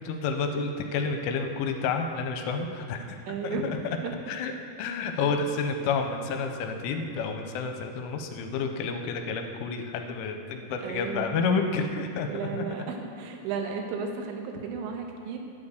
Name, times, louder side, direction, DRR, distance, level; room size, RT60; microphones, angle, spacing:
voice 1, 0.0-3.2 3.4-3.8 4.3-4.5 4.8-12.7, left 4 dB, 85° left, 5 dB, 3.2 m, -30 dB
voice 2, 3.3-4.1 10.8-11.5 12.3-15.4, right 4 dB, 80° right, 2 dB, 3.6 m, -34 dB
9.8 x 8.5 x 6.5 m, 2.6 s
omnidirectional pair, 5.6 m